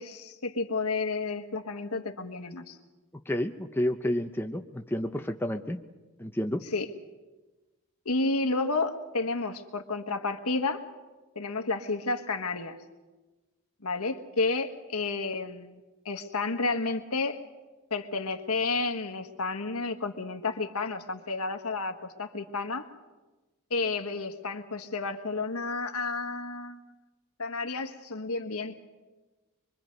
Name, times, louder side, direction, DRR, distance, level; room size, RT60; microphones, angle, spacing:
voice 1, 0.0-2.8 6.7-6.8 8.0-10.8 11.3-12.8 13.8-15.8 16.0-17.4 17.9-22.9 23.7-26.8 27.4-28.8, left 3 dB, 90° left, 6 dB, 1.5 m, -31 dB
voice 2, 3.3-5.8 6.2-6.6, left 1 dB, 10° left, 5 dB, 0.7 m, -30 dB
24.0 x 24.0 x 5.3 m, 1.2 s
head